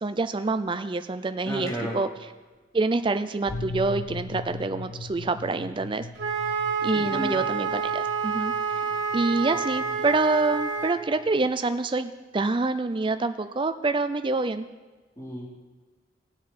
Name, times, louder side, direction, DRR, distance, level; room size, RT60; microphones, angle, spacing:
voice 1, 0.0-2.1 2.7-6.1 6.8-8.5 9.1-14.7, right 3 dB, 25° right, 10 dB, 0.4 m, -26 dB
voice 2, 1.4-2.0 6.9-7.4 15.2-15.5, equal, 15° left, -5 dB, 3.4 m, -33 dB
sound 1, 3.5-11.5, left 3 dB, 75° left, 0.9 m, -40 dB
Wind instrument woodwind instrument, 6.2-11.0, right 5 dB, 75° right, 1.4 m, -28 dB
18.0 x 7.5 x 4.2 m, 1.3 s
head